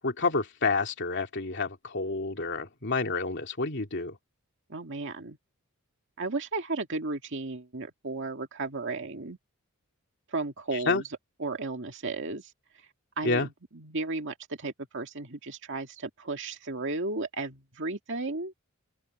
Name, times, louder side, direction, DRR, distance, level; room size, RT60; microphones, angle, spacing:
voice 1, 0.0-4.2 10.9-11.0 13.2-13.5, left 3 dB, 55° left, 2.8 m, -29 dB
voice 2, 4.7-5.4 6.2-9.4 10.3-11.1 11.4-12.5 13.2-18.5, right 3 dB, 55° right, 2.2 m, -34 dB
open air
head